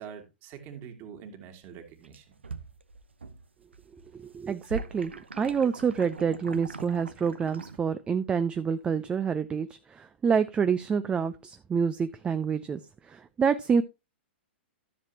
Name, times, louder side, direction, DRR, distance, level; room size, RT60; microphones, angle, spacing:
voice 1, 0.0-2.2, right 8 dB, 40° right, 2.7 m, -44 dB
sound 1, 1.9-3.5 3.7-7.8, right 4 dB, 85° right, 1.0 m, -41 dB
voice 2, 4.1-13.8, right 6 dB, 15° right, 0.6 m, -27 dB
13.5 x 7.4 x 2.9 m
hypercardioid pair, 110°, 6 cm